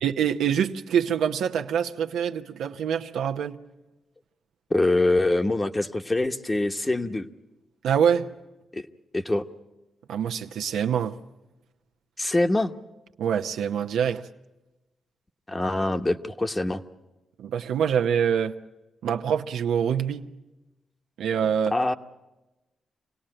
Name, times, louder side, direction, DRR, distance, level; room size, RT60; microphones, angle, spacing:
voice 1, 0.0-3.6 7.8-8.3 10.1-11.2 13.2-14.2 17.4-18.5 19.0-20.3 21.2-21.7, right 8 dB, 85° right, 0.9 m, -25 dB
voice 2, 4.7-7.3 8.7-8.9 9.1-9.4 12.2-12.7 15.5-16.8 21.7-21.9, left 2 dB, 20° left, 1.1 m, -24 dB
26.5 x 17.5 x 8.9 m
cardioid pair, 70°, 0 cm